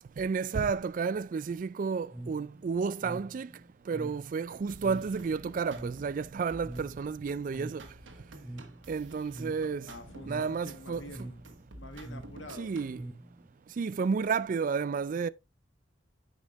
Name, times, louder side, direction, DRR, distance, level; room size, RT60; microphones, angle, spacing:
voice 1, 0.2-3.5 3.9-7.8 8.9-9.9 10.3-11.1 12.6-13.0 13.8-15.3, right 5 dB, 45° right, 0.3 m, -31 dB
sound 1, 2.1-13.7, right 1 dB, 10° right, 0.7 m, -46 dB
sound 2, 4.7-13.0, right 1 dB, 80° right, 1.4 m, -51 dB
voice 2, 9.9-11.4 11.7-12.7, left 1 dB, 85° left, 1.6 m, -47 dB
9.8 x 5.4 x 3.0 m
head